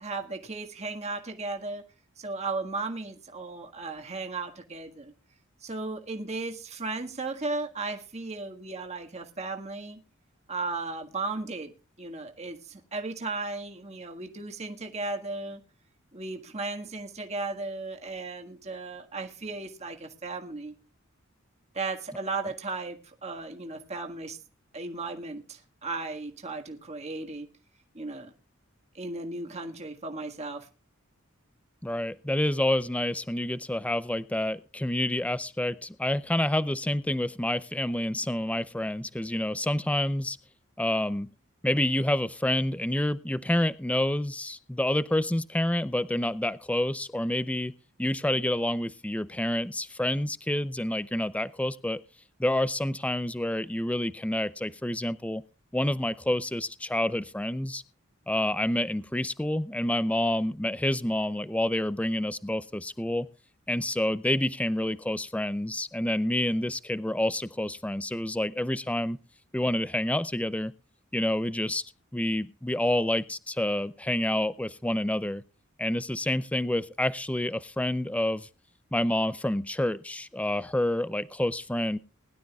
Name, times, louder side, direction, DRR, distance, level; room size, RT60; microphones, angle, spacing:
voice 1, 0.0-1.8 2.2-5.1 5.6-10.0 10.5-11.7 12.0-15.6 16.1-20.7 21.7-24.4 24.7-27.5 27.9-28.3 28.9-30.7, right 3 dB, 30° right, 1.7 m, -35 dB
voice 2, 31.8-40.4 40.8-41.3 41.6-47.7 48.0-52.0 52.4-55.4 55.7-57.8 58.3-63.3 63.7-69.2 69.5-70.7 71.1-71.8 72.1-75.4 75.8-78.5 78.9-82.0, left 1 dB, 5° left, 0.5 m, -28 dB
21.0 x 12.0 x 2.3 m
head